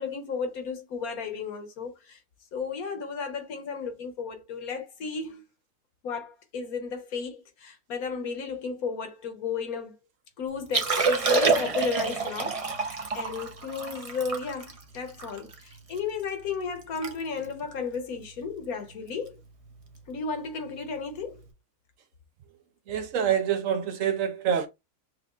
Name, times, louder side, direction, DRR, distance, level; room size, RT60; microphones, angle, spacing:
voice 1, 0.0-2.2 2.5-5.4 6.0-10.0 10.4-12.9 13.1-19.4 20.1-21.4, left 5 dB, 75° left, 1.4 m, -34 dB
Liquid, 10.6-16.0 16.5-16.6 16.8-17.1 17.4-17.6 18.2-18.5 19.9-20.0, right 4 dB, 35° right, 0.5 m, -27 dB
voice 2, 22.9-24.7, right 8 dB, 65° right, 0.9 m, -26 dB
6.1 x 2.4 x 2.3 m
omnidirectional pair, 1.5 m